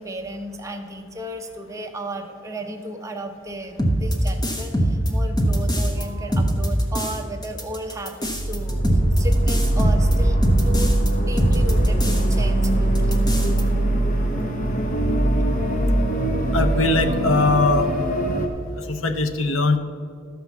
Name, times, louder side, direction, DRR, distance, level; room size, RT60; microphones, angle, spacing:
voice 1, 0.0-10.4 10.6-13.2, right 1 dB, 15° right, 3 dB, 0.9 m, -34 dB
sound 1, 3.8-6.0 6.3-7.2 7.4-11.1 11.4-12.3 12.6-12.7 12.9-13.6, equal, 20° left, 1.1 m, -22 dB
sound 2, 8.2-18.5, right 1 dB, 40° left, 1.0 m, -21 dB
voice 2, 16.5-17.9 18.9-19.8, left 3 dB, 80° left, 9 dB, 0.8 m, -21 dB
12.5 x 5.8 x 7.2 m, 2.3 s
head